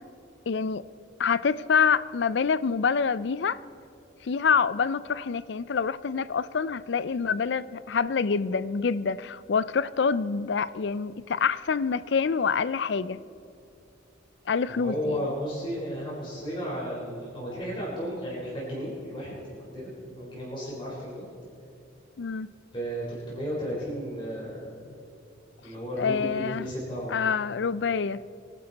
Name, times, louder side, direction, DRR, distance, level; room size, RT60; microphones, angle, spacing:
voice 1, 0.5-0.8 1.2-3.6 4.2-13.2 14.5-15.2 22.2-22.5 26.0-26.7 27.1-28.2, left 5 dB, 65° left, 17 dB, 0.4 m, -26 dB
voice 2, 14.7-21.3 22.7-24.8 25.6-27.3, equal, 25° left, -6 dB, 4.2 m, -34 dB
23.5 x 11.5 x 4.1 m, 2.8 s
head